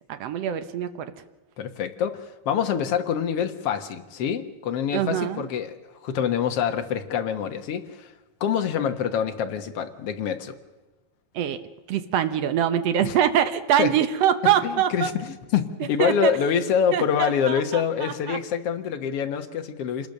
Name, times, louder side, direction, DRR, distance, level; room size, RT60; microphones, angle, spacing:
voice 1, 0.1-1.1 4.9-5.5 11.3-11.6 11.9-15.1 16.0-16.3 16.9-18.4, right 10 dB, 75° right, 9 dB, 1.4 m, -24 dB
voice 2, 1.6-5.8 6.0-8.1 8.4-10.6 13.0-13.1 13.8-13.9 14.6-20.1, left 8 dB, 55° left, 6 dB, 1.7 m, -26 dB
27.0 x 20.5 x 6.7 m, 1.2 s
omnidirectional pair, 4.3 m